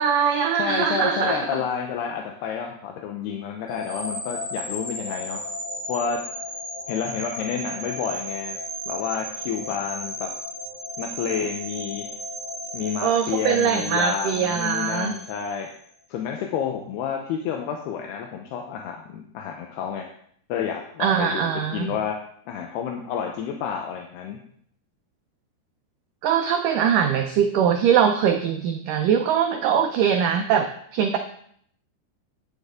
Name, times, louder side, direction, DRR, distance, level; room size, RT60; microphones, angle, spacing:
voice 1, 0.0-1.6 13.0-15.1 21.0-21.9 26.2-31.2, right 8 dB, 90° right, 5 dB, 1.8 m, -22 dB
voice 2, 0.5-5.4 5.9-6.2 6.9-8.6 8.9-10.3 11.0-12.1 12.7-15.7 16.1-20.1 20.5-22.2 22.5-24.4, left 7 dB, 80° left, 2 dB, 2.9 m, -29 dB
sound 1, 3.7-15.8, equal, 10° left, 5.4 m, -34 dB
10.5 x 9.7 x 3.7 m, 0.64 s
omnidirectional pair, 4.7 m